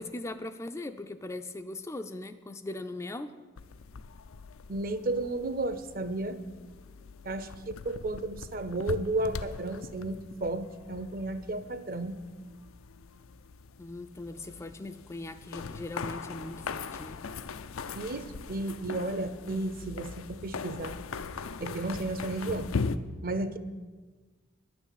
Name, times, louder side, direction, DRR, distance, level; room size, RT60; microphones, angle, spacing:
voice 1, 0.0-3.3 13.8-17.2, left 2 dB, 15° left, 8 dB, 0.3 m, -39 dB
sound 1, 3.6-23.0, left 5 dB, 85° left, 0.5 m, -40 dB
voice 2, 4.7-6.4 7.2-12.2 18.0-21.0 21.6-22.7 23.2-23.6, right 2 dB, 45° right, 12 dB, 0.7 m, -33 dB
11.0 x 6.2 x 9.1 m, 1.4 s
head